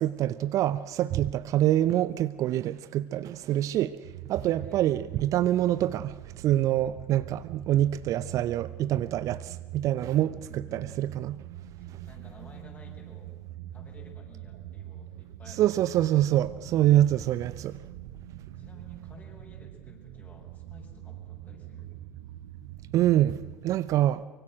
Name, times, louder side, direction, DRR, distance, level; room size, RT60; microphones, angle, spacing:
voice 1, 0.0-4.0 4.3-11.4 15.6-17.8 22.9-24.3, right 13 dB, 45° right, 0.7 m, -25 dB
sound 1, 4.0-23.6, right 13 dB, 65° right, 1.3 m, -44 dB
voice 2, 4.4-5.0 10.1-10.9 11.8-13.3 13.7-15.9 18.6-21.9, left 3 dB, 25° left, 7.6 m, -53 dB
24.5 x 24.5 x 6.5 m
figure-of-eight pair, 60°, 8 cm